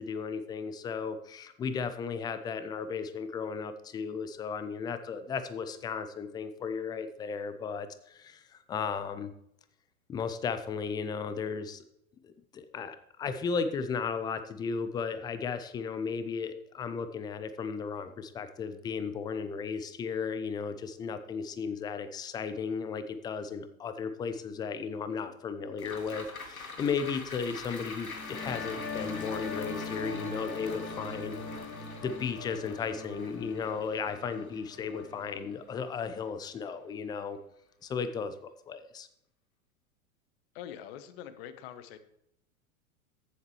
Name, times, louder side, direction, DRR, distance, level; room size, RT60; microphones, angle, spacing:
voice 1, 0.0-9.3 10.1-11.8 12.2-31.4 31.8-37.4 37.8-39.1, left 5 dB, 10° left, 12 dB, 0.4 m, -35 dB
sound 1, 25.8-36.3 36.7-36.8, left 3 dB, 80° left, 1.4 m, -46 dB
sound 2, 28.0-35.4, left 3 dB, 25° left, 2.3 m, -41 dB
voice 2, 40.5-42.0, left 10 dB, 45° left, 12 dB, 1.1 m, -44 dB
14.5 x 7.3 x 3.1 m, 0.76 s
figure-of-eight pair, 90°, 42 cm